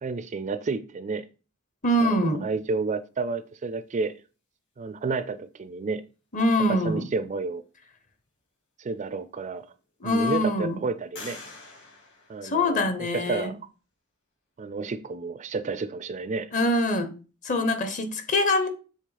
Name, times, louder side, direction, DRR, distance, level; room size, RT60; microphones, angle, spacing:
voice 1, 0.0-1.3 2.0-4.2 4.8-6.0 6.7-7.6 8.8-9.7 10.0-11.4 12.3-13.6 14.6-16.5, right 4 dB, 35° right, 0.4 m, -31 dB
voice 2, 1.8-2.4 6.3-7.0 10.0-10.8 12.4-13.5 16.5-17.1 17.4-18.7, left 1 dB, 40° left, 0.9 m, -24 dB
sound 1, 8.9-9.0 9.6-10.2 11.1-13.1, left 3 dB, 60° left, 3.2 m, -46 dB
7.3 x 3.5 x 4.0 m
head